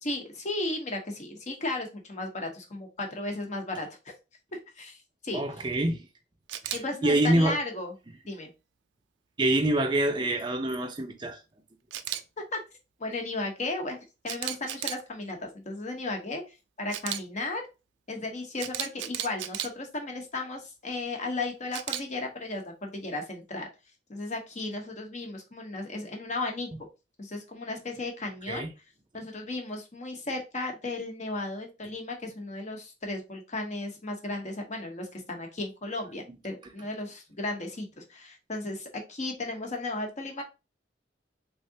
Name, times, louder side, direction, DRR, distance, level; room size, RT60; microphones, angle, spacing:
voice 1, 0.0-3.9 4.8-5.0 5.2-5.4 6.7-7.9 8.3-8.5 12.4-12.6 13.0-14.0 14.2-16.4 16.8-17.6 18.1-23.7 24.1-26.7 27.2-28.7 29.1-40.4, left 2 dB, 40° left, 0.9 m, -35 dB
voice 2, 5.3-6.1 6.6-6.7 7.0-7.6 9.4-11.4 28.5-28.7, right 1 dB, 25° right, 0.5 m, -25 dB
Camera, 6.5-6.8 11.9-12.2 14.3-15.0 16.9-17.2 18.6-19.7 21.7-22.0, right 11 dB, 85° right, 0.4 m, -33 dB
3.6 x 3.3 x 2.7 m
head